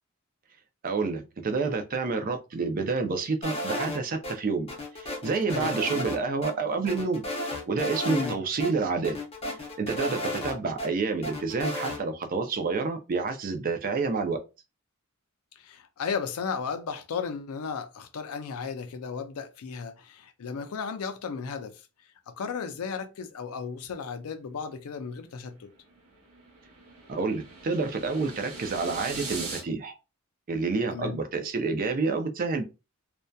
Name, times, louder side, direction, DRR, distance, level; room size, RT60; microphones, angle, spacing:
voice 1, 0.8-4.7 4.9-7.2 7.7-9.2 9.8-14.4 27.1-29.9 30.5-32.6, right 4 dB, 40° right, 0.4 m, -29 dB
sound 1, 3.4-4.3 4.7-6.2 6.4-6.5 6.9-8.3 8.6-8.7 9.0-10.9 11.2-12.0, left 1 dB, 25° left, 0.6 m, -33 dB
voice 2, 8.1-8.4 15.6-25.7 30.9-31.2, left 5 dB, 80° left, 0.4 m, -35 dB
sound 2, 25.3-29.6, right 3 dB, 70° right, 0.9 m, -40 dB
2.6 x 2.1 x 2.2 m
head